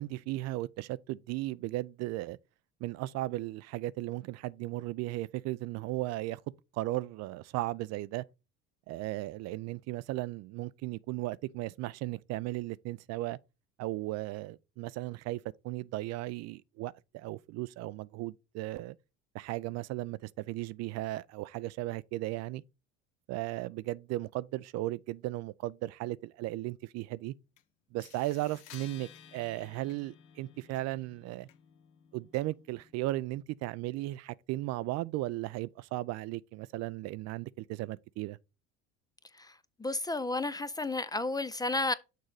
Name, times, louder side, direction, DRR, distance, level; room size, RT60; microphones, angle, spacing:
voice 1, 0.0-2.4 2.8-6.4 6.7-8.2 8.9-13.4 13.8-15.4 15.6-19.0 19.3-22.6 23.3-27.3 27.9-31.5 32.1-38.4, right 17 dB, 50° right, 0.4 m, -36 dB
sound 1, 27.6-27.7 28.0-33.0, left 9 dB, 75° left, 1.2 m, -55 dB
voice 2, 39.4-41.9, left 2 dB, 10° left, 0.4 m, -32 dB
6.6 x 3.7 x 4.8 m
hypercardioid pair, 80°, 34 cm